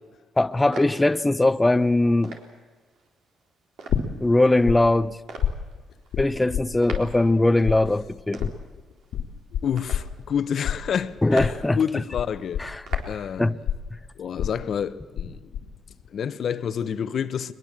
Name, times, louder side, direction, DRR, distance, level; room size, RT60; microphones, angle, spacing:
voice 1, 0.4-2.3 4.2-5.2 6.2-8.5 11.2-12.0 12.6-12.8 13.4-13.6, left 2 dB, 15° left, 0.7 m, -21 dB
sound 1, 0.7-13.4, right 3 dB, 75° right, 3.9 m, -43 dB
sound 2, 3.9-4.8 5.0-7.4 7.6-15.3 15.5-16.1, left 9 dB, 85° left, 2.2 m, -28 dB
voice 2, 9.6-12.6 13.1-13.6 14.2-15.4 16.1-17.5, left 8 dB, 60° left, 1.1 m, -28 dB
22.0 x 22.0 x 7.6 m
cardioid pair, 90°, 0 cm